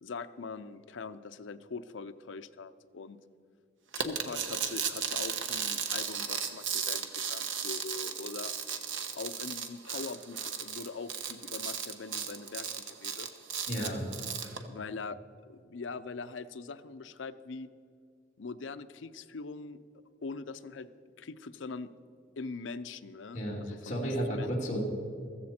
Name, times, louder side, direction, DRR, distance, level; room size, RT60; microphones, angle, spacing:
voice 1, 0.0-3.2 4.0-8.5 9.1-13.3 14.7-15.2 15.5-17.7 18.4-19.8 20.2-20.9 21.2-21.9 22.4-24.5, left 4 dB, 85° left, 13 dB, 0.6 m, -42 dB
sound 1, 3.9-14.6, right 7 dB, 90° right, 1.1 m, -35 dB
voice 2, 13.7-14.1 23.3-24.8, equal, 40° left, -3 dB, 2.6 m, -33 dB
15.0 x 14.5 x 4.3 m, 2.5 s
head